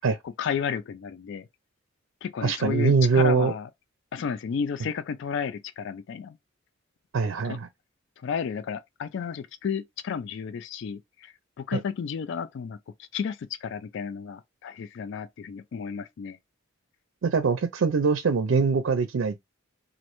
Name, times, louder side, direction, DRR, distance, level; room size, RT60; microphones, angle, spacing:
voice 1, 0.2-1.5 2.2-3.7 4.1-6.4 7.4-7.6 8.2-12.8 13.1-16.4, left 6 dB, 65° left, 0.3 m, -32 dB
voice 2, 2.4-3.5 7.1-7.7 11.7-11.8 17.2-19.4, right 5 dB, 70° right, 0.4 m, -23 dB
3.1 x 2.5 x 2.9 m
head